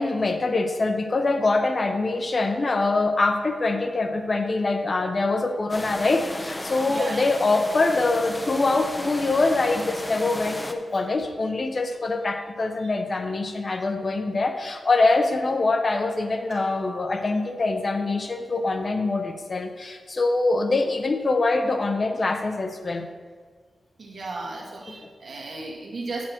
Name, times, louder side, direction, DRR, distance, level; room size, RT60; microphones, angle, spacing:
voice 1, 0.0-23.1, left 3 dB, 40° left, 5 dB, 0.8 m, -24 dB
sound 1, 5.7-10.7, left 1 dB, 15° left, 0.6 m, -35 dB
voice 2, 6.8-7.3 12.8-12.9 16.5-16.6 24.0-26.3, right 2 dB, 65° right, -1 dB, 1.8 m, -35 dB
8.7 x 7.6 x 4.4 m, 1.5 s
wide cardioid pair, 135°, 0 cm